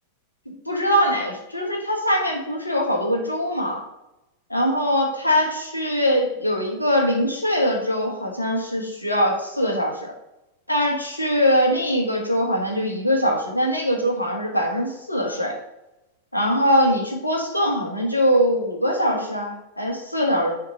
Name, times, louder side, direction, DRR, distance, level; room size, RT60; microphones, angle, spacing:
voice 1, 0.5-3.8 4.5-10.1 10.7-15.5 16.3-20.5, equal, 85° left, 0 dB, 1.3 m, -22 dB
6.5 x 3.7 x 4.3 m, 0.91 s
figure-of-eight pair, 90°, 0 cm